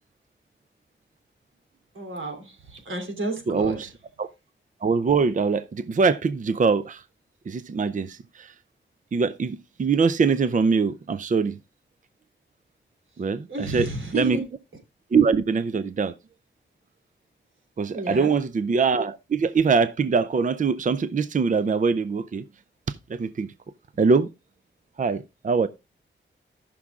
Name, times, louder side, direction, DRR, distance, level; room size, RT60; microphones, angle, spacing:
voice 1, 1.9-3.9 13.5-14.4 17.9-18.3, right 2 dB, 85° right, 3.0 m, -31 dB
voice 2, 3.5-3.9 4.2-4.3 4.8-7.0 7.5-8.5 9.1-11.6 13.2-13.9 14.1-14.4 15.1-16.1 17.8-22.4 22.9-23.5 24.0-24.3 25.0-25.7, right 5 dB, 40° right, 0.5 m, -23 dB
18.0 x 6.1 x 2.4 m
wide cardioid pair, 85°, 20 cm